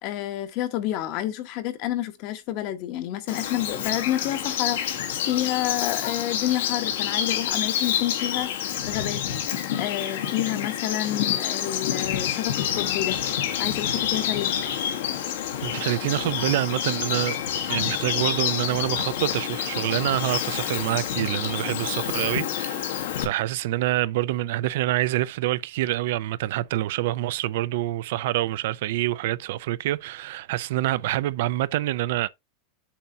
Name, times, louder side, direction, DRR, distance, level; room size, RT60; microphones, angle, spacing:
voice 1, 0.0-9.2 9.8-13.2 13.6-14.6, left 13 dB, 40° left, 1.0 m, -29 dB
Bird vocalization bird call bird song, 3.3-23.2, left 10 dB, 75° left, 1.4 m, -28 dB
voice 2, 15.6-17.4 17.7-32.3, right 15 dB, 60° right, 0.4 m, -26 dB
7.1 x 2.8 x 5.5 m
supercardioid pair, 170°, 0 cm